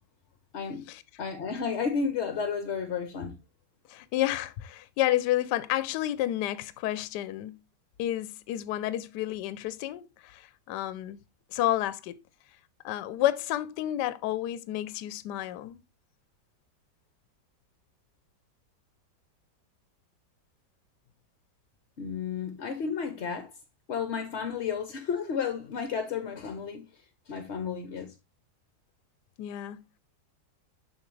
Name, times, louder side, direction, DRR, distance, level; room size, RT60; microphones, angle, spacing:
voice 1, 0.5-0.9 1.2-3.4 22.0-23.5 23.9-28.1, left 6 dB, 55° left, 0.8 m, -32 dB
voice 2, 3.9-7.6 8.0-11.2 11.5-12.2 12.8-15.8 29.4-29.8, left 14 dB, 75° left, 1.1 m, -30 dB
7.2 x 6.0 x 3.1 m
omnidirectional pair, 2.0 m